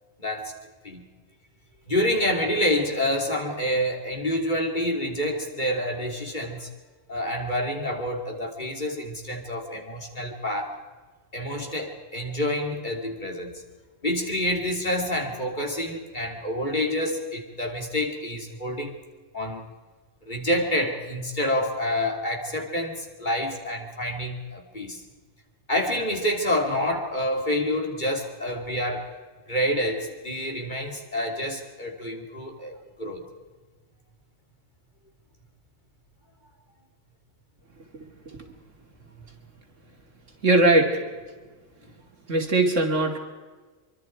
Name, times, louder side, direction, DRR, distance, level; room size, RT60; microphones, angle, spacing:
voice 1, 0.2-0.5 0.8-1.0 1.9-6.7 7.1-10.8 11.3-13.6 14.0-18.9 19.3-19.6 20.3-25.0 25.7-29.2 29.5-33.2, left 1 dB, 35° left, 1 dB, 3.2 m, -28 dB
voice 2, 40.4-41.0 42.3-43.2, right 2 dB, 60° right, 3 dB, 2.9 m, -20 dB
25.5 x 24.0 x 4.6 m, 1.3 s
omnidirectional pair, 1.4 m